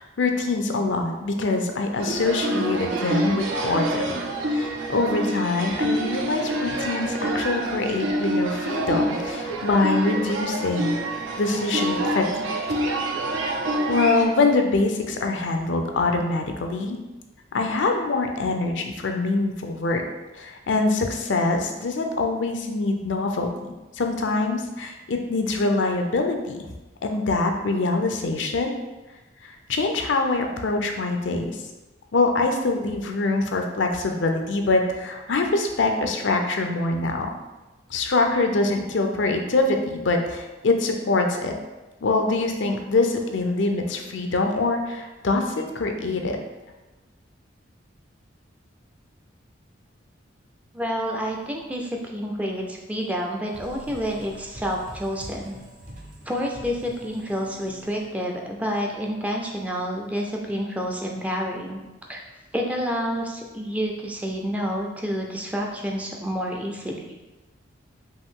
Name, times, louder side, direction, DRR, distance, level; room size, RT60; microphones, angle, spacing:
voice 1, 0.0-4.0 4.5-11.0 11.4-12.8 13.9-17.0 17.5-20.0 20.3-26.7 27.0-28.8 29.4-31.6 32.1-37.3 37.9-41.5 42.0-46.4, left 3 dB, 70° left, 4 dB, 0.5 m, -24 dB
sound 1, 2.0-14.2, right 1 dB, 80° right, 0.6 m, -27 dB
voice 2, 50.7-55.6 56.3-61.8 62.1-62.2 62.5-67.1, equal, 5° right, 0 dB, 0.4 m, -29 dB
Irridesen Guitar Books Style, 53.5-58.8, right 1 dB, 45° right, 0.7 m, -44 dB
5.3 x 2.6 x 3.7 m, 1.1 s
head